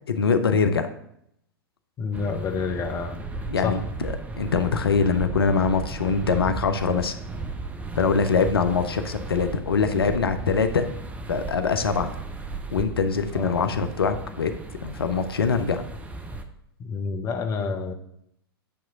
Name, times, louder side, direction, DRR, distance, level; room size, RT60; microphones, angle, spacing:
voice 1, 0.1-0.9 3.5-7.2 8.0-10.9 11.3-12.1 12.7-14.5 14.8-15.9, left 5 dB, 70° left, 9 dB, 0.6 m, -23 dB
voice 2, 2.0-3.2 3.6-3.8 8.3-8.5 13.3-13.5 16.8-17.9, left 5 dB, 25° left, 6 dB, 0.8 m, -28 dB
sound 1, 2.1-16.4, right 2 dB, 10° right, 0.6 m, -35 dB
8.6 x 3.0 x 5.7 m, 0.75 s
figure-of-eight pair, 100°, 13 cm